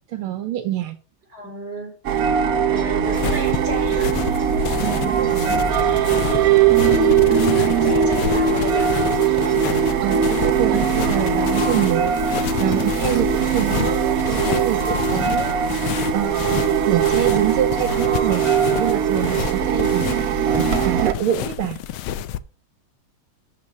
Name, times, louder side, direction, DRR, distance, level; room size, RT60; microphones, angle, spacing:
voice 1, 0.1-1.0 4.8-5.6 10.0-15.9 16.1-18.5 18.8-21.8, right 11 dB, 80° right, 1.7 m, -26 dB
voice 2, 1.3-2.0 2.7-4.2 7.2-9.5, right 1 dB, 35° right, 4.7 m, -32 dB
sound 1, 2.0-21.1, right 7 dB, 55° right, 1.1 m, -20 dB
sound 2, 2.7-9.5, right 2 dB, 45° left, 2.1 m, -35 dB
sound 3, 3.1-22.4, left 11 dB, 80° left, 1.5 m, -29 dB
12.0 x 4.8 x 6.4 m
omnidirectional pair, 2.3 m